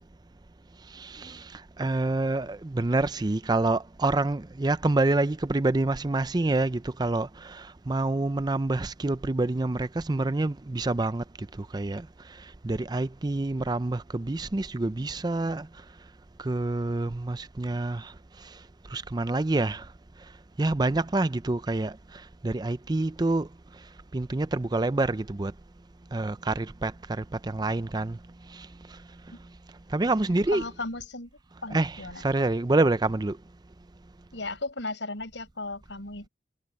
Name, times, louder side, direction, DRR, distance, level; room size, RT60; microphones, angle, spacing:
voice 1, 0.9-11.2 11.6-12.1 12.6-15.7 16.4-18.1 18.9-19.8 20.6-22.0 22.4-23.5 24.1-25.5 26.1-28.2 28.5-28.7 29.9-30.7 31.7-33.4, right 2 dB, 25° right, 0.5 m, -27 dB
voice 2, 30.5-31.3 31.6-32.2 34.3-36.3, left 2 dB, 90° left, 4.9 m, -35 dB
head